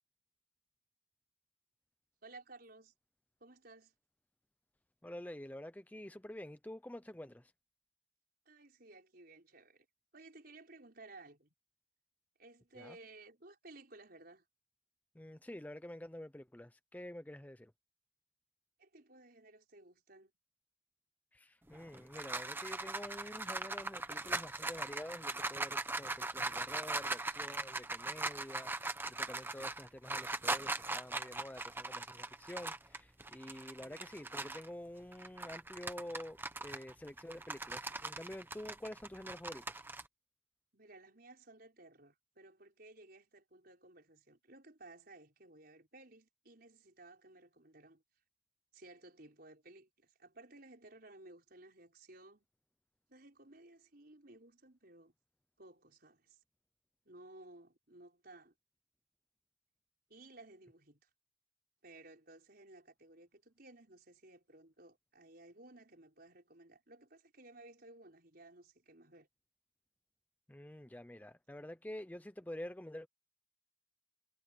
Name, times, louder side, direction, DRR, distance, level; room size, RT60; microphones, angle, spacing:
voice 1, 2.2-2.9 3.4-3.9 8.5-9.9 10.1-11.5 12.4-14.4 18.8-20.3 40.7-48.0 48.7-52.5 53.1-55.1 55.6-56.4 57.1-58.5 60.1-61.1 61.8-69.3, right 2 dB, 50° right, 5.2 m, -57 dB
voice 2, 5.0-7.5 12.8-13.0 15.1-17.7 21.3-39.8 70.5-73.1, left 1 dB, 10° left, 0.5 m, -48 dB
sound 1, 21.7-34.7 35.1-40.0, right 2 dB, 10° right, 1.1 m, -40 dB
head